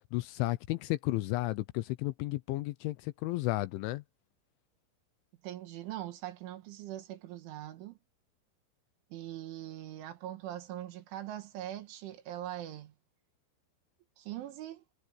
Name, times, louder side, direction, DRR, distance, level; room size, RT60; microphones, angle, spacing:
voice 1, 0.1-4.0, left 19 dB, 80° left, 3.0 m, -33 dB
voice 2, 5.4-8.0 9.1-12.9 14.2-14.8, right 13 dB, 70° right, 4.1 m, -42 dB
omnidirectional pair, 5.9 m